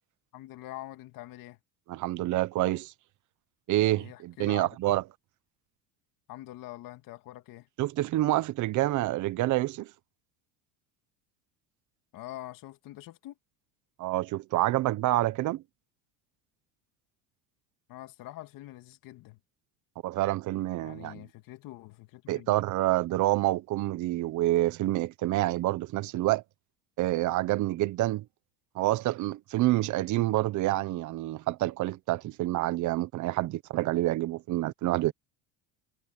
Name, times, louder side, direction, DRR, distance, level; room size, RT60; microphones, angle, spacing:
voice 1, 0.3-1.6 3.9-4.7 6.3-7.7 12.1-13.4 17.9-19.4 20.8-22.5, left 16 dB, 60° left, 2.5 m, -45 dB
voice 2, 1.9-2.9 3.7-5.0 7.8-9.9 14.0-15.6 20.0-21.2 22.3-26.4 27.0-28.2 28.7-35.1, right 16 dB, 50° right, 1.1 m, -27 dB
supercardioid pair, 125°, 38 cm